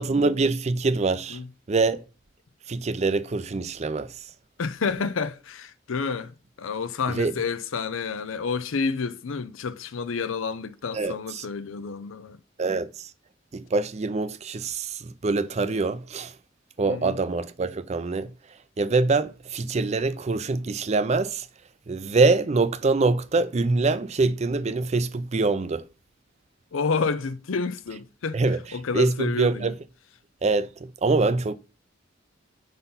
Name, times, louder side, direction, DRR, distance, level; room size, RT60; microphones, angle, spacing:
voice 1, 0.0-1.4 1.7-2.0 2.7-4.3 7.1-7.3 10.9-11.5 12.6-13.1 13.5-16.4 16.8-18.3 18.8-21.5 21.9-25.8 28.3-28.6 28.9-29.7 30.4-31.5, right 3 dB, 35° right, 0.4 m, -24 dB
voice 2, 4.6-12.4 16.9-17.2 26.7-28.4 28.7-29.7, left 5 dB, 85° left, 0.5 m, -29 dB
5.4 x 4.0 x 5.5 m
head